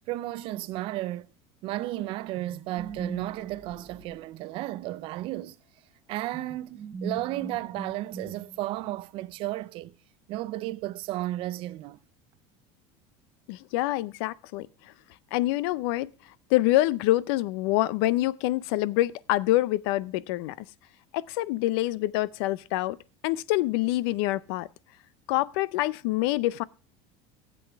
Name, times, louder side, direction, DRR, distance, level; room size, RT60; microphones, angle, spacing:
voice 1, 0.1-1.3 1.6-5.6 6.1-10.0 10.3-12.0, right 16 dB, 40° right, 0.4 m, -33 dB
sound 1, 2.4-4.9 6.3-8.8, right 3 dB, 20° right, 4.9 m, -41 dB
voice 2, 13.5-14.7 15.3-16.1 16.5-20.7 21.1-23.0 23.2-24.7 25.3-26.6, left 16 dB, 70° left, 0.5 m, -26 dB
16.0 x 7.7 x 3.4 m
cardioid pair, 170°, 14 cm